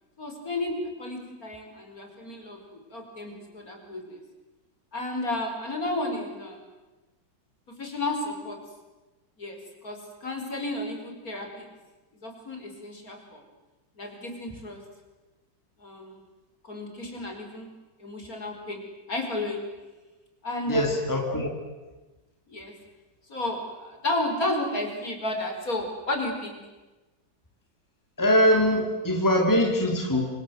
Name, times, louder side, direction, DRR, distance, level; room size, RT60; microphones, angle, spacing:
voice 1, 0.2-0.7 1.0-4.2 4.9-6.6 7.8-8.6 9.4-11.7 12.2-13.4 14.0-14.8 15.8-16.2 16.6-17.7 18.0-18.8 19.1-19.6 20.4-20.9 21.3-21.4 22.5-22.7 23.3-26.6, left 2 dB, 40° left, 3 dB, 5.5 m, -32 dB
voice 2, 20.7-21.5 28.2-30.2, equal, 10° left, 1 dB, 3.3 m, -22 dB
28.5 x 26.5 x 7.9 m, 1.1 s
omnidirectional pair, 2.2 m